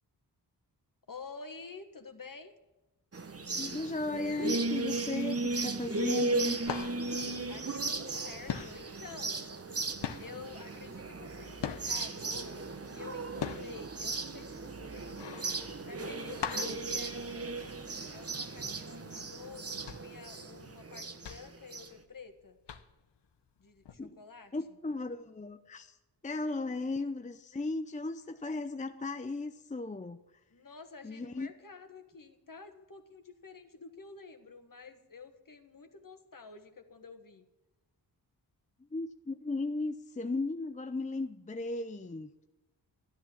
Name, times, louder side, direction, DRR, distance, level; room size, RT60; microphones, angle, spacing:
voice 1, 1.1-2.5 7.5-9.5 10.2-15.4 15.8-17.6 18.1-22.6 23.6-24.5 26.3-26.4 30.5-37.4, left 4 dB, 50° left, 7 dB, 1.7 m, -50 dB
sound 1, 3.1-21.9, right 3 dB, 35° right, 1.1 m, -36 dB
voice 2, 3.6-6.6 24.0-24.2 24.5-26.0 26.2-30.2 31.0-31.5 38.9-42.3, left 3 dB, 15° left, 9 dB, 0.6 m, -36 dB
sound 2, 5.7-6.0 6.3-8.2 8.4-12.2 12.6-17.9 18.3-18.4 18.8-19.0 19.5-22.3 22.7-23.2 23.8-24.0, left 7 dB, 70° left, 1.0 m, -41 dB
13.0 x 10.5 x 7.2 m, 1.0 s
cardioid pair, 65°, 43 cm